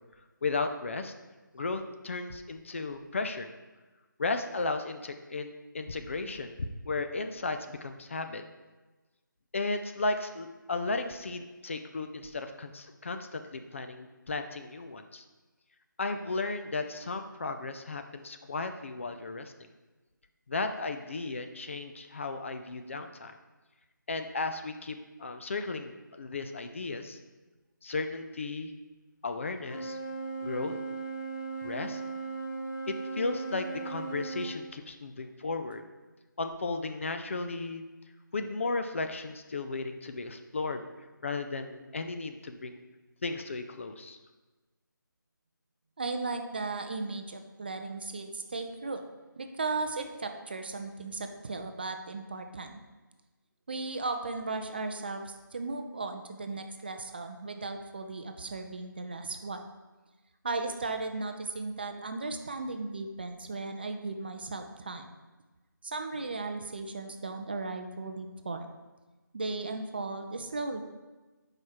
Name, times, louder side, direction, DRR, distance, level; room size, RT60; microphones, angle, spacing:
voice 1, 0.4-1.1 1.5-3.5 4.2-6.5 6.8-8.4 9.5-15.2 16.0-19.5 20.5-23.4 24.1-27.2 27.8-28.7 29.2-30.0 30.4-30.8 31.6-32.0 32.9-35.8 36.4-37.8 38.3-40.9 41.2-42.8 43.2-44.2, left 3 dB, 40° left, 7 dB, 0.4 m, -35 dB
Wind instrument woodwind instrument, 29.6-34.6, right 3 dB, 75° left, 2.1 m, -37 dB
voice 2, 46.0-49.0 49.4-52.8 53.7-59.6 60.4-65.1 65.8-68.7 69.3-70.8, right 3 dB, 30° right, 6 dB, 0.4 m, -36 dB
6.4 x 4.8 x 4.2 m, 1.2 s
figure-of-eight pair, 160°, 11 cm